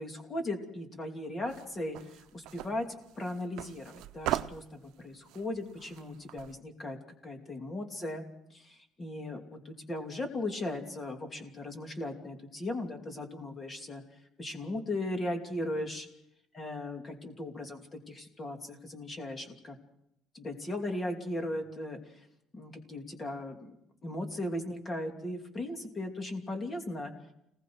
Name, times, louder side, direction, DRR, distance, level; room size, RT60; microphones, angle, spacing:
voice 1, 0.0-2.9 3.1-7.0 7.2-8.2 8.5-14.0 14.4-16.1 16.5-19.8 20.3-22.3 22.5-23.8 24.0-27.1, left 1 dB, 20° left, 4 dB, 2.9 m, -37 dB
sound 1, 1.5-6.6, right 15 dB, 75° right, 0.7 m, -39 dB
29.5 x 20.0 x 4.8 m, 0.81 s
cardioid pair, 170°, 0 cm